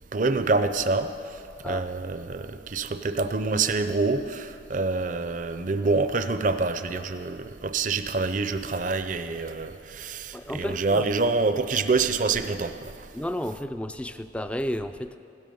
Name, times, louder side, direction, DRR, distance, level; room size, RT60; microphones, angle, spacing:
voice 1, 0.1-1.1 1.6-12.9, right 3 dB, 45° right, 9 dB, 0.5 m, -26 dB
voice 2, 10.3-11.1 13.1-15.2, equal, 5° left, 10 dB, 0.4 m, -32 dB
16.0 x 12.5 x 5.5 m, 2.6 s
head